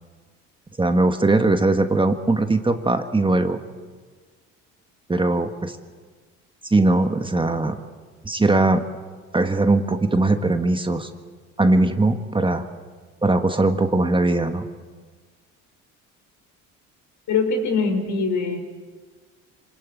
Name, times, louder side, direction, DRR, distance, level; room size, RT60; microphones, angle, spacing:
voice 1, 0.8-3.6 5.1-5.8 6.6-7.7 8.2-8.8 9.3-11.1 11.6-12.7 13.2-14.7, right 2 dB, 15° right, 7 dB, 1.6 m, -20 dB
voice 2, 17.3-18.6, left 4 dB, 65° left, 5 dB, 5.2 m, -22 dB
26.0 x 19.5 x 9.2 m, 1.5 s
supercardioid pair, 90°, 33 cm